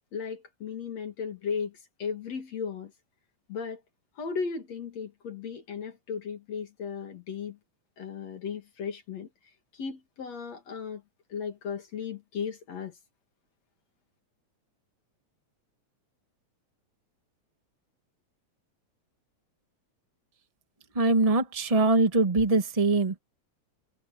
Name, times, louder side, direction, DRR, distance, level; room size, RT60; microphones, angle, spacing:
voice 1, 0.1-2.9 3.5-3.8 4.2-7.6 8.0-9.3 9.7-11.0 11.3-13.0, left 6 dB, 60° left, 3.5 m, -36 dB
voice 2, 20.9-23.2, right 2 dB, 30° right, 0.6 m, -23 dB
omnidirectional pair, 3.4 m